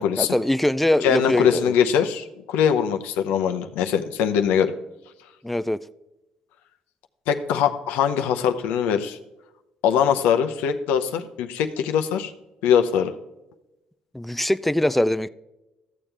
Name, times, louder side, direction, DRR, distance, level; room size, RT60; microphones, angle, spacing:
voice 1, 0.2-1.7 5.4-5.8 14.1-15.3, left 1 dB, 5° left, 0.4 m, -22 dB
voice 2, 1.0-4.7 7.3-9.2 9.8-12.3 12.6-13.1, left 8 dB, 80° left, 0.7 m, -22 dB
13.5 x 7.1 x 3.4 m
supercardioid pair, 60°, 3 cm